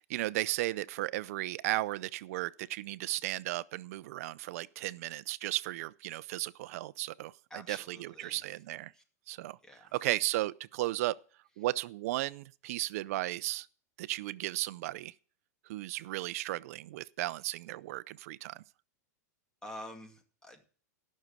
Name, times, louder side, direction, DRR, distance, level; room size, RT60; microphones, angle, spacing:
voice 1, 0.0-8.9 9.3-9.6 9.9-11.2 11.6-13.7 14.0-15.1 15.7-18.6, right 17 dB, 60° right, 0.6 m, -35 dB
voice 2, 7.5-8.6 8.9-9.0 9.6-10.0 19.6-20.7, left 1 dB, 5° left, 2.2 m, -48 dB
13.5 x 6.5 x 8.1 m
supercardioid pair, 150°, 9 cm